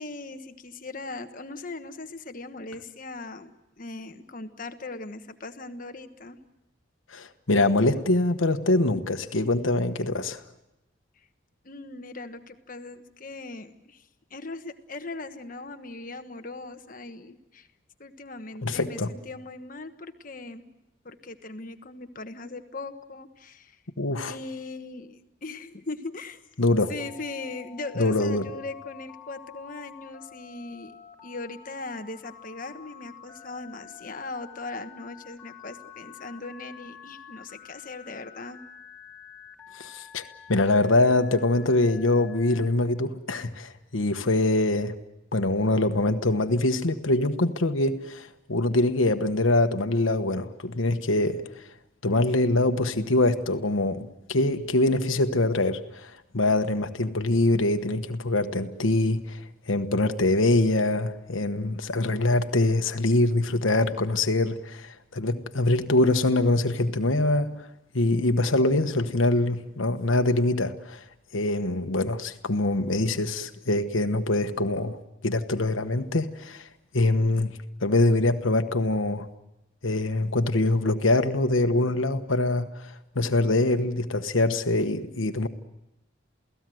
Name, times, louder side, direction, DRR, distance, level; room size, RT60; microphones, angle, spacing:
voice 1, 0.0-3.5 3.8-6.4 11.6-17.7 18.0-20.7 21.0-23.8 24.3-26.4 26.9-38.6, left 3 dB, 40° left, 1.3 m, -39 dB
voice 2, 7.1-10.4 18.6-19.1 24.0-24.4 26.6-26.9 28.0-28.4 39.7-44.9 45.3-51.7 52.0-67.7 67.9-71.0 71.3-75.0 75.2-76.7 76.9-79.3 79.8-85.5, left 2 dB, 80° left, 1.2 m, -24 dB
Telephone, 27.0-42.7, left 8 dB, 10° left, 3.6 m, -48 dB
28.5 x 17.5 x 7.8 m
head